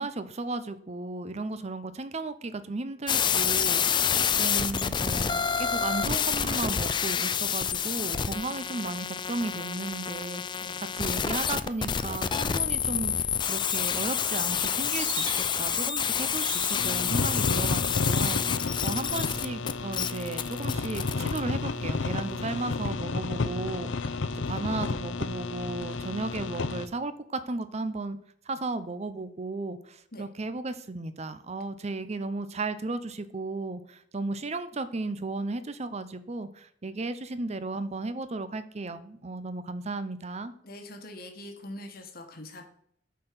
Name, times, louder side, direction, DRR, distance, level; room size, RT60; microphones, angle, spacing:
voice 1, 0.0-4.1 4.4-24.2 24.5-28.2 28.5-40.5, right 3 dB, 35° right, 12 dB, 0.6 m, -35 dB
sound 1, 3.1-21.4, left 7 dB, 25° left, 0.4 m, -28 dB
sound 2, 13.6-22.9, right 4 dB, 70° right, 2.6 m, -45 dB
sound 3, 16.7-26.9, left 3 dB, 75° left, 0.6 m, -31 dB
voice 2, 40.6-42.6, left 1 dB, 50° left, 5 dB, 1.3 m, -43 dB
9.2 x 4.5 x 6.6 m, 0.69 s
head